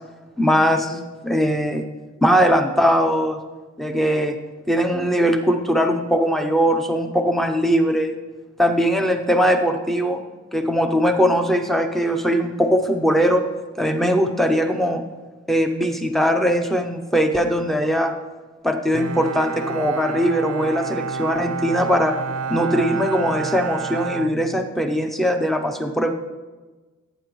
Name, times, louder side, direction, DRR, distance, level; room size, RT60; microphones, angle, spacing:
voice 1, 0.4-1.8 2.2-3.4 3.8-4.3 4.7-8.1 8.6-10.2 10.5-13.4 13.8-15.0 15.5-18.1 18.6-22.1 22.5-26.1, equal, ahead, 5 dB, 0.6 m, -20 dB
Bowed string instrument, 18.9-25.1, right 5 dB, 90° right, 0.4 m, -30 dB
17.0 x 8.9 x 3.1 m, 1.3 s
head